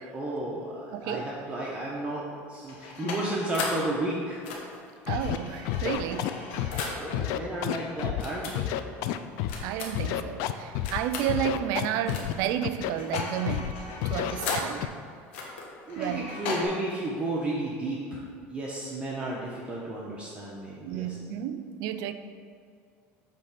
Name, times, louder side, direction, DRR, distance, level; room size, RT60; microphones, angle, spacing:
voice 1, 0.1-4.4 7.0-8.7 15.9-18.2 18.5-21.2, right 1 dB, 20° right, -5 dB, 1.0 m, -33 dB
voice 2, 0.9-1.3 5.1-6.3 6.6-6.8 9.6-13.8 14.0-14.9 16.0-16.3 20.9-22.1, right 10 dB, 65° right, 10 dB, 0.4 m, -32 dB
sound 1, 2.6-3.9 4.4-7.1 8.2-8.6 9.5-10.1 10.8-11.3 12.1-12.4 12.7-14.8 15.3-16.7, left 3 dB, 85° left, 1.3 m, -36 dB
Scratching (performance technique), 5.1-5.4 5.6-6.8 7.1-8.2 8.5-9.6 9.9-11.0 11.3-12.3 12.6-13.2 13.5-13.7 14.0-14.8, left 12 dB, 70° left, 0.4 m, -30 dB
8.0 x 3.3 x 5.9 m, 2.3 s
supercardioid pair, 110°, 6 cm